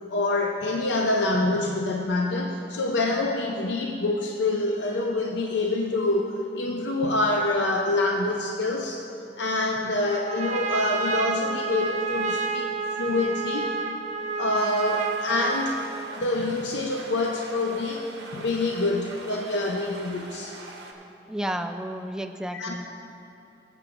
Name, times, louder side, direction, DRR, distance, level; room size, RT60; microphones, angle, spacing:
voice 1, 0.1-9.0 9.4-12.7 13.0-13.7 14.4-15.8 16.2-18.0 18.3-20.6 22.5-22.8, left 2 dB, 80° left, 1 dB, 0.6 m, -26 dB
Trumpet, 10.0-16.0, right 4 dB, 40° right, 0.7 m, -30 dB
sound 1, 14.6-20.9, right 2 dB, 70° right, 1.2 m, -43 dB
voice 2, 21.3-22.9, right 1 dB, 5° right, 5 dB, 0.3 m, -31 dB
19.0 x 7.9 x 2.5 m, 2.8 s
head